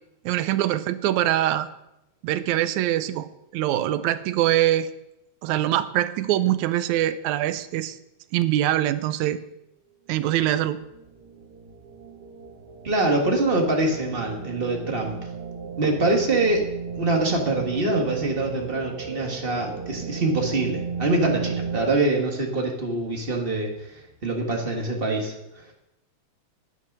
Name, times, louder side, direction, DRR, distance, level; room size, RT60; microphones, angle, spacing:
voice 1, 0.3-1.7 2.2-3.3 3.5-4.9 5.4-8.0 8.3-9.4 10.1-10.8, right 13 dB, 80° right, 13 dB, 1.9 m, -23 dB
sound 1, 10.8-21.8, right 5 dB, 55° right, 2.0 m, -35 dB
voice 2, 12.8-15.1 15.8-16.7 16.9-25.3, right 2 dB, 30° right, 1 dB, 1.0 m, -24 dB
9.7 x 9.1 x 6.0 m, 0.87 s
omnidirectional pair, 3.4 m